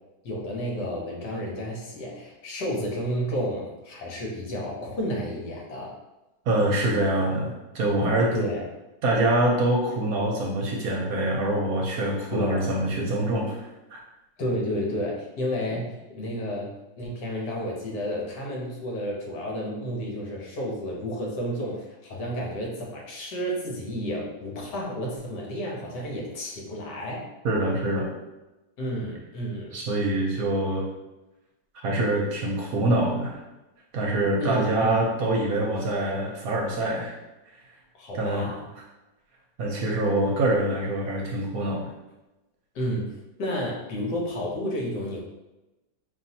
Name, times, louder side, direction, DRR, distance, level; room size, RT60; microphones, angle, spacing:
voice 1, 0.2-5.9 8.3-8.7 12.3-12.6 14.4-16.7 17.0-27.2 28.8-29.7 34.4-34.9 37.9-38.7 39.7-39.8 42.7-43.1 43.4-45.2, equal, 70° left, -2 dB, 1.5 m, -31 dB
voice 2, 6.5-8.3 9.0-14.0 27.4-28.1 29.7-30.9 31.8-33.4 33.9-37.1 38.2-38.5 39.6-41.9, right 1 dB, 65° right, -1 dB, 1.0 m, -25 dB
5.3 x 2.7 x 2.7 m, 1.0 s
omnidirectional pair, 1.9 m